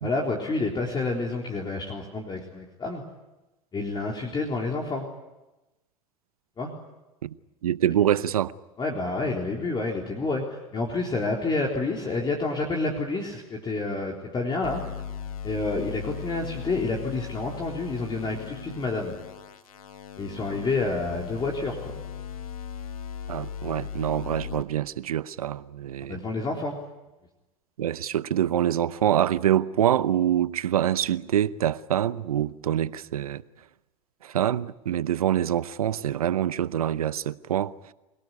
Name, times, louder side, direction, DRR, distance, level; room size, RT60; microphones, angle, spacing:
voice 1, 0.0-3.0 3.7-5.1 6.6-6.7 8.8-15.0 15.4-19.2 20.2-21.9 26.1-26.8, left 3 dB, 25° left, 3.8 m, -29 dB
voice 2, 7.6-8.5 23.3-26.2 27.8-33.4 34.2-37.9, right 11 dB, 85° right, 0.8 m, -25 dB
sound 1, 14.6-24.6, left 8 dB, 85° left, 1.9 m, -38 dB
26.5 x 18.0 x 9.7 m
hypercardioid pair, 90°, 18 cm